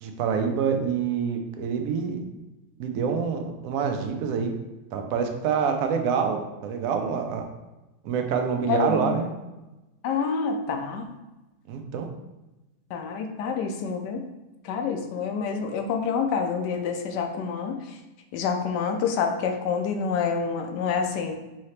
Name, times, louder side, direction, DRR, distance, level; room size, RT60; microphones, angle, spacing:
voice 1, 0.0-2.2 2.8-4.5 4.9-7.4 8.0-9.3 11.7-12.1, right 6 dB, 65° right, 4 dB, 0.9 m, -26 dB
voice 2, 8.7-9.2 10.0-11.1 12.9-14.2 14.6-18.0 18.3-21.4, left 6 dB, 85° left, 5 dB, 1.2 m, -27 dB
4.7 x 2.8 x 3.2 m, 1.0 s
omnidirectional pair, 1.8 m